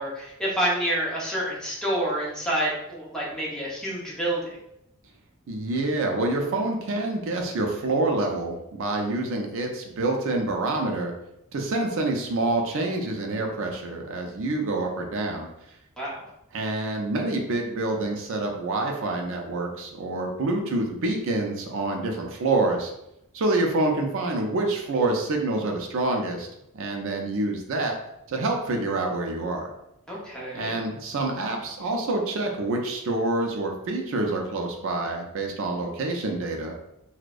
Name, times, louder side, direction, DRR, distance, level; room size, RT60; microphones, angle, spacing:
voice 1, 0.0-4.5 16.0-16.2 30.1-30.8, right 1 dB, 5° left, -6 dB, 0.6 m, -28 dB
voice 2, 5.5-11.1 11.5-15.5 16.5-22.9 23.3-26.5 26.7-28.0 28.3-29.7 30.5-36.7, right 2 dB, 60° right, 2 dB, 0.4 m, -27 dB
2.6 x 2.0 x 2.3 m, 0.82 s
head